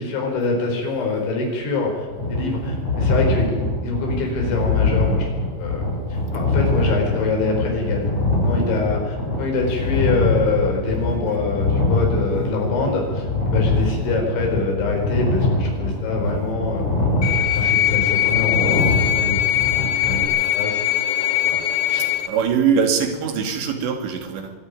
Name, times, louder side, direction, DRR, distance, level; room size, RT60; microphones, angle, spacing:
voice 1, 0.0-5.8 6.1-8.1 8.4-17.1 17.5-18.8 19.2-20.2 20.5-20.8 21.4-21.6 21.9-22.1, left 3 dB, 85° left, 1 dB, 7.0 m, -25 dB
sound 1, 2.1-20.2, left 2 dB, 35° left, 8.0 m, -23 dB
sound 2, 17.2-22.3, left 13 dB, 60° left, 2.2 m, -21 dB
voice 2, 22.3-24.5, right 6 dB, 75° right, 6 dB, 4.5 m, -22 dB
23.0 x 14.5 x 9.7 m, 1.3 s
omnidirectional pair, 5.2 m